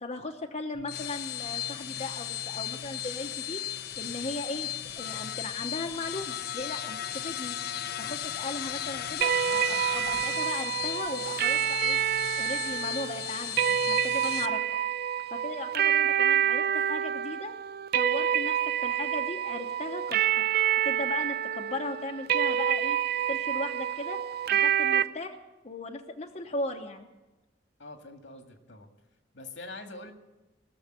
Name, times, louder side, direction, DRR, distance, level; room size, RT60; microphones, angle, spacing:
voice 1, 0.0-4.7 5.0-7.6 8.0-12.0 12.4-14.6 15.3-17.5 17.9-20.4 20.8-23.0 23.3-24.2 24.5-25.4 25.6-27.1, left 2 dB, 40° left, 3 dB, 0.9 m, -37 dB
sound 1, 0.7-14.5, left 11 dB, 60° left, 0.6 m, -36 dB
sound 2, 9.2-25.0, right 9 dB, 55° right, 0.5 m, -27 dB
voice 2, 27.8-28.9 29.3-30.1, left 2 dB, 80° left, 5 dB, 2.0 m, -44 dB
19.0 x 7.1 x 9.9 m, 1.1 s
head